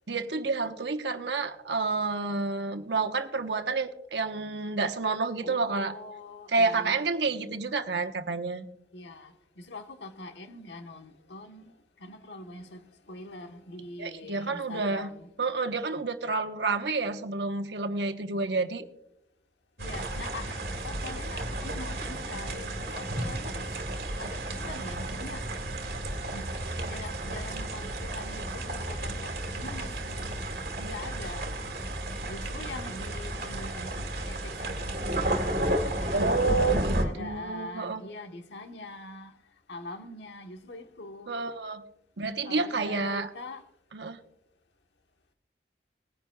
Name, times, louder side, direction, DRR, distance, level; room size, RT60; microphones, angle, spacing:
voice 1, 0.1-5.9 6.5-8.7 14.0-15.1 15.4-18.8 36.1-38.0 41.3-41.8 42.2-43.3 43.9-44.2, right 3 dB, 85° right, 1.1 m, -29 dB
voice 2, 5.4-7.6 8.9-15.3 19.8-23.8 24.2-25.5 26.3-26.5 26.8-30.4 30.8-31.5 32.3-35.5 36.0-36.3 36.7-39.3 39.7-41.3 42.4-43.7, left 2 dB, 85° left, 1.3 m, -43 dB
sound 1, 19.8-37.0, right 1 dB, 70° right, 2.1 m, -32 dB
20.5 x 10.5 x 2.3 m
head